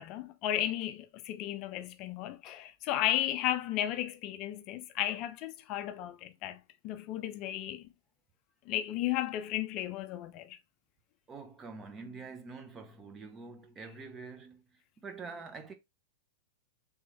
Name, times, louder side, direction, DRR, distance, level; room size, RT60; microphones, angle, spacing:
voice 1, 0.0-6.6 6.8-7.8 8.7-10.6, left 12 dB, 45° left, 0.4 m, -34 dB
voice 2, 11.3-14.6 15.0-15.7, right 4 dB, 20° right, 0.9 m, -46 dB
3.5 x 3.2 x 3.1 m
hypercardioid pair, 120°, 0 cm